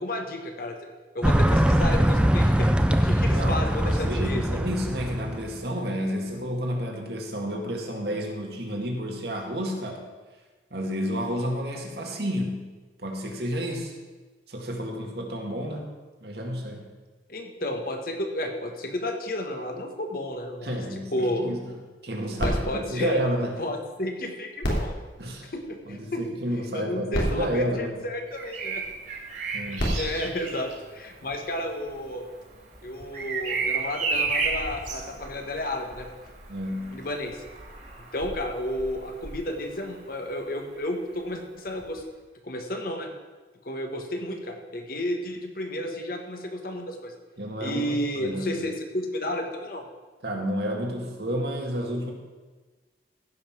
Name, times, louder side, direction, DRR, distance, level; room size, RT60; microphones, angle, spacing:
voice 1, 0.0-4.4 17.3-21.5 22.4-23.2 23.6-25.0 25.5-26.2 26.7-28.8 29.9-32.2 32.8-36.1 36.9-37.4 38.1-42.0 42.4-43.1 43.6-47.1 47.6-49.8, left 1 dB, 55° left, 4 dB, 1.5 m, -32 dB
sound 1, 1.2-5.6, equal, 5° right, 0.5 m, -22 dB
voice 2, 3.2-10.0 10.7-12.7 13.0-13.9 14.5-15.9 16.2-16.9 20.6-21.6 22.0-23.6 25.2-25.5 25.9-28.0 29.5-30.0 36.5-37.0 47.4-48.7 50.2-52.1, equal, 65° right, 1 dB, 2.0 m, -30 dB
sound 2, 22.4-24.0 24.6-26.2 26.8-26.9 27.1-28.7 29.5-31.3 32.1-32.2, equal, 80° left, 3.0 m, -32 dB
Bird vocalization bird call bird song, 28.2-40.1 41.8-42.0, right 4 dB, 45° right, 2.5 m, -33 dB
15.0 x 5.7 x 6.0 m, 1.3 s
head